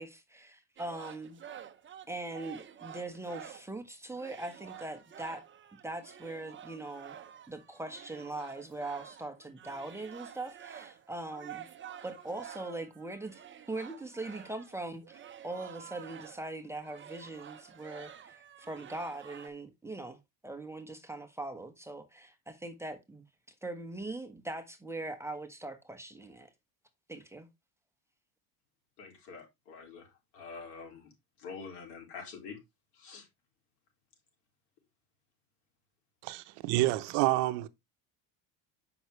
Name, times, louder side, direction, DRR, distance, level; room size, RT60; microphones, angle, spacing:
voice 1, 0.0-1.4 2.1-5.4 5.8-7.2 7.5-11.7 12.0-13.4 13.7-23.2 23.6-26.5 27.1-27.5, right 2 dB, 5° right, 1.2 m, -41 dB
sound 1, 0.8-3.8 4.1-16.5 16.8-19.5, right 9 dB, 30° right, 0.8 m, -49 dB
voice 2, 29.0-31.1 31.4-32.6 32.9-33.3, left 5 dB, 70° left, 4.0 m, -46 dB
voice 3, 36.2-37.7, right 17 dB, 70° right, 0.8 m, -28 dB
7.8 x 5.9 x 3.1 m
supercardioid pair, 110°, 41 cm